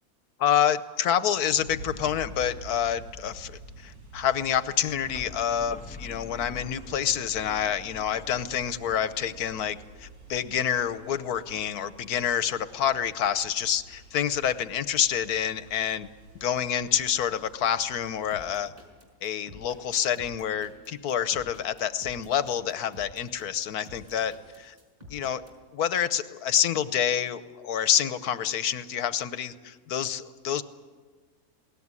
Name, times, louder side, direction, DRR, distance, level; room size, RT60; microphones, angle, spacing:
voice 1, 0.4-16.1 16.4-18.7 19.2-24.7 25.1-25.4 25.7-30.6, left 9 dB, 85° left, 13 dB, 1.4 m, -27 dB
sound 1, 1.6-18.5, right 2 dB, 80° right, 5.2 m, -48 dB
sound 2, 4.7-10.5, left 3 dB, 5° left, 1.3 m, -46 dB
sound 3, 18.3-25.5, left 1 dB, 25° right, 5.5 m, -49 dB
21.0 x 18.5 x 9.7 m, 1.4 s
omnidirectional pair, 1.6 m